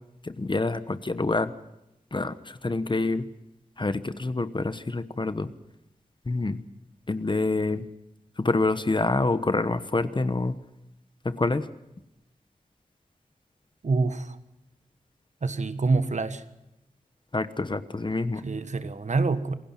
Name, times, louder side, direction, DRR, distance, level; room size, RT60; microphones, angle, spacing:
voice 1, 0.2-1.5 2.1-3.2 3.8-5.5 6.3-6.6 7.1-7.8 8.4-10.6 11.2-11.7 17.3-18.4, left 3 dB, 35° left, 12 dB, 1.1 m, -27 dB
voice 2, 13.8-14.4 15.4-16.4 18.4-19.5, right 3 dB, 60° right, 11 dB, 1.5 m, -26 dB
27.0 x 17.0 x 6.0 m, 0.89 s
cardioid pair, 50°, 14 cm